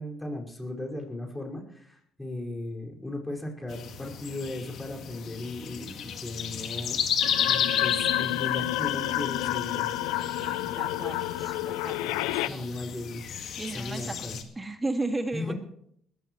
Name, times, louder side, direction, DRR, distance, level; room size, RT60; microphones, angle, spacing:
voice 1, 0.0-7.0 7.4-9.9 12.4-14.4 15.3-15.5, left 2 dB, 10° left, -1 dB, 5.2 m, -37 dB
sound 1, 3.7-14.4, left 8 dB, 65° left, 1.8 m, -33 dB
sound 2, 7.2-12.5, left 15 dB, 90° left, 0.5 m, -29 dB
voice 2, 10.4-12.0 12.5-12.7 13.6-14.2 14.6-15.5, right 2 dB, 15° right, 6 dB, 2.0 m, -34 dB
20.5 x 14.5 x 3.1 m, 0.70 s
supercardioid pair, 80°, 0 cm